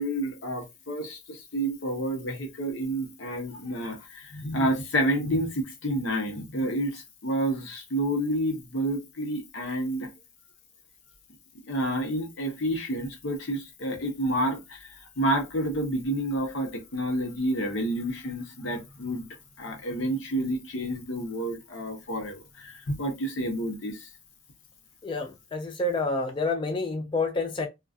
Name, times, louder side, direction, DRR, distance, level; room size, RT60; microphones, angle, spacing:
voice 1, 0.0-10.1 11.6-19.2 19.6-24.1, right 1 dB, 80° left, 0.8 m, -29 dB
voice 2, 25.0-27.7, left 2 dB, 25° left, 0.3 m, -28 dB
2.4 x 2.3 x 2.3 m
head